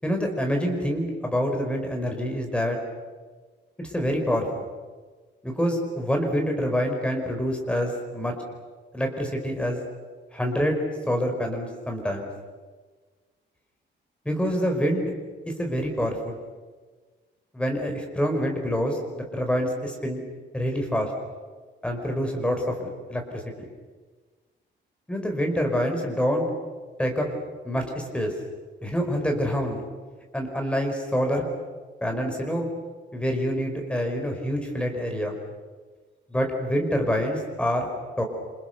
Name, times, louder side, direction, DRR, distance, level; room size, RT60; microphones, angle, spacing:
voice 1, 0.0-2.8 3.8-4.6 5.4-8.4 8.9-9.8 10.3-10.8 11.1-12.3 14.2-15.1 15.6-16.4 17.5-20.2 20.5-21.1 21.8-23.7 25.1-26.5 27.0-27.3 27.6-28.3 28.8-29.8 30.3-31.5 32.0-32.7 33.1-35.3 36.3-37.9 38.2-38.3, equal, 5° left, 2 dB, 4.9 m, -26 dB
28.5 x 27.5 x 6.8 m, 1.4 s
wide cardioid pair, 160°, 19 cm